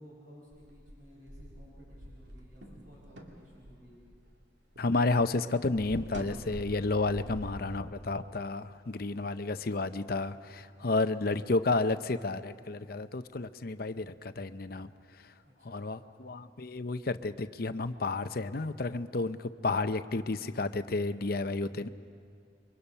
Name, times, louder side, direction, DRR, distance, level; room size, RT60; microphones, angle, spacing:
voice 1, 0.0-4.1 15.4-15.9, equal, 50° right, -4 dB, 5.0 m, -56 dB
sound 1, 0.5-4.9 5.2-7.7, equal, 75° right, 2.4 m, -46 dB
voice 2, 4.8-14.9 15.6-21.9, left 3 dB, 55° left, 11 dB, 0.7 m, -31 dB
28.0 x 23.5 x 5.6 m, 2.4 s
head